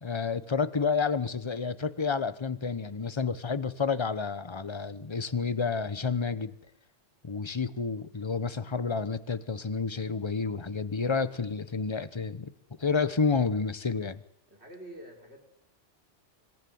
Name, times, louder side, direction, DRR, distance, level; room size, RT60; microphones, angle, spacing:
voice 1, 0.0-6.5 7.2-12.5 12.8-14.2, left 5 dB, 25° left, 1.0 m, -30 dB
voice 2, 14.5-15.5, right 1 dB, 60° right, 5.3 m, -47 dB
26.0 x 16.5 x 9.4 m
omnidirectional pair, 1.2 m